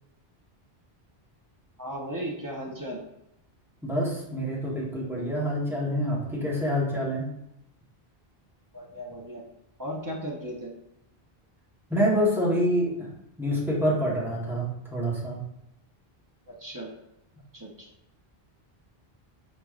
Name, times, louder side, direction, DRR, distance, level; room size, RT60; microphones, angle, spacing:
voice 1, 1.8-3.0 8.7-9.5 9.8-10.7 16.5-16.9 17.5-17.9, equal, 25° right, -2 dB, 0.5 m, -36 dB
voice 2, 3.8-7.3 11.9-13.1 13.4-15.4, equal, ahead, -6 dB, 0.9 m, -26 dB
4.9 x 3.0 x 2.4 m, 0.85 s
omnidirectional pair, 1.1 m